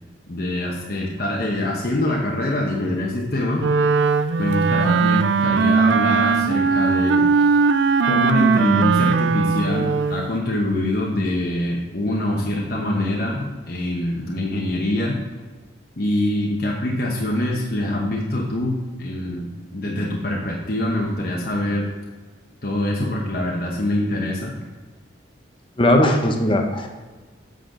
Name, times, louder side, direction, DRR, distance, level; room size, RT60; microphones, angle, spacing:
voice 1, 0.3-3.6 4.4-7.3 8.0-15.2 16.0-21.9 22.6-24.5, left 1 dB, 50° left, -2 dB, 1.0 m, -24 dB
Wind instrument woodwind instrument, 3.6-10.3, right 5 dB, 70° right, 0.4 m, -19 dB
voice 2, 25.8-26.9, left 1 dB, 25° left, 3 dB, 0.9 m, -18 dB
7.8 x 6.5 x 3.8 m, 1.3 s
head